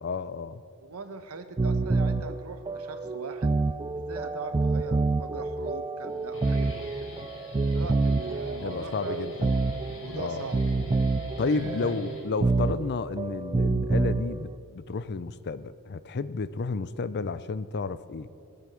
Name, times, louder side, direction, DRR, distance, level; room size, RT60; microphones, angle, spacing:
voice 1, 0.0-0.6 8.6-9.5 10.1-10.5 11.4-18.3, left 4 dB, 50° left, 15 dB, 0.5 m, -32 dB
voice 2, 0.8-3.5 3.9-7.2 7.7-9.6 10.0-10.6 11.5-11.9, right 3 dB, 70° right, 8 dB, 1.2 m, -40 dB
sound 1, 1.6-14.5, right 3 dB, 25° right, 0.3 m, -28 dB
Guitar, 6.1-12.7, left 1 dB, 70° left, 3.7 m, -42 dB
20.5 x 8.1 x 7.5 m, 2.7 s
head